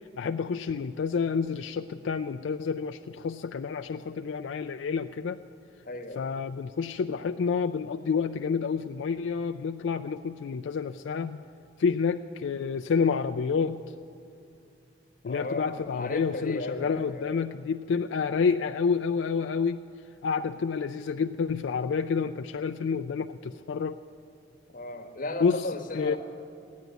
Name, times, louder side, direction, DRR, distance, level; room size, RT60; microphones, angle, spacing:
voice 1, 0.1-5.4 6.2-11.4 11.8-13.8 15.2-19.8 20.2-24.0 25.4-25.7 25.9-26.2, left 5 dB, 80° left, 6 dB, 0.4 m, -29 dB
voice 2, 5.8-6.3 15.2-17.5 24.7-26.2, left 2 dB, 45° left, 5 dB, 1.1 m, -35 dB
14.5 x 9.5 x 9.1 m, 2.5 s
head